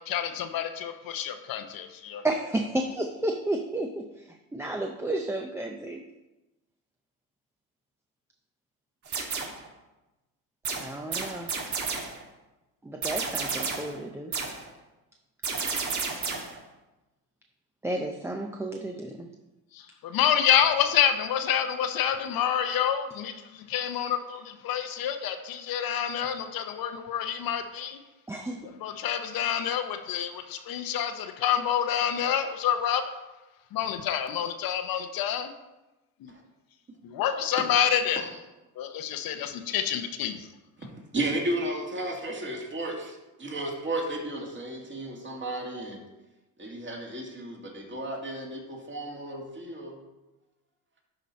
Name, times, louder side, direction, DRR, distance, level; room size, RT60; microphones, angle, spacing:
voice 1, 0.0-2.2 19.7-28.0 28.8-33.1 33.7-35.5 36.2-36.3 37.0-38.2 38.8-40.5, left 9 dB, 60° left, 7 dB, 0.8 m, -28 dB
voice 2, 2.2-4.1 4.5-6.0 10.8-11.5 12.8-14.3 17.8-19.3 28.3-28.6, right 1 dB, 5° right, 3 dB, 0.5 m, -31 dB
sound 1, 9.1-9.7 10.6-12.2 13.0-14.0 14.3-14.7 15.4-16.6, right 4 dB, 45° right, 1.5 m, -32 dB
voice 3, 40.8-46.0 46.6-50.0, right 1 dB, 30° right, -1 dB, 2.0 m, -34 dB
11.5 x 4.0 x 4.2 m, 1.0 s
cardioid pair, 100°, 39 cm